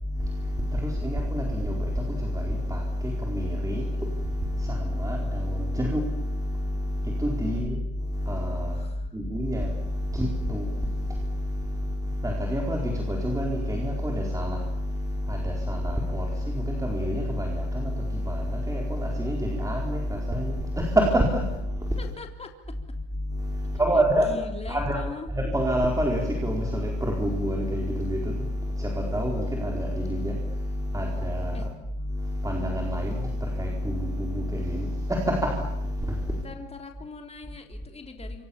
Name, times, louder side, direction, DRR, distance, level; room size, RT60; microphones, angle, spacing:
voice 1, 0.0-22.1 23.2-24.4 24.7-31.7 31.9-36.4, equal, 5° right, 0 dB, 4.4 m, -27 dB
voice 2, 8.7-9.2 22.0-22.8 23.7-25.3 31.5-31.7 36.3-38.4, left 4 dB, 15° left, 4 dB, 3.4 m, -41 dB
28.0 x 26.0 x 7.2 m, 0.89 s
supercardioid pair, 125°, 46 cm